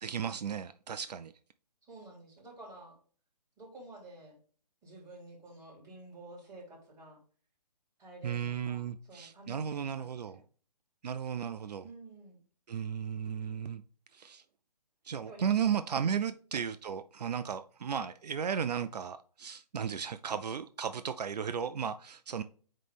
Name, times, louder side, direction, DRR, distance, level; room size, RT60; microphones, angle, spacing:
voice 1, 0.0-1.3 8.2-10.4 11.0-11.9 12.7-13.8 14.1-14.4 15.0-22.4, right 7 dB, 75° right, 0.5 m, -35 dB
voice 2, 1.9-3.0 3.6-4.4 4.8-7.2 8.0-10.4 11.8-12.4 15.2-16.1, right 2 dB, 15° right, 3.4 m, -51 dB
8.9 x 3.3 x 3.4 m
hypercardioid pair, 145°, 21 cm